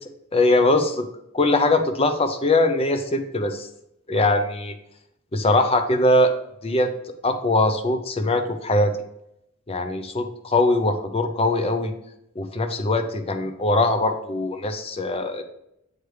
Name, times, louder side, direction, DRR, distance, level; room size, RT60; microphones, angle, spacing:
voice 1, 0.3-1.1 1.3-3.7 4.1-4.7 5.3-6.3 6.6-6.9 7.2-8.9 9.7-11.9 12.4-15.4, left 2 dB, 25° left, 8 dB, 0.5 m, -21 dB
7.9 x 3.3 x 4.7 m, 0.80 s
head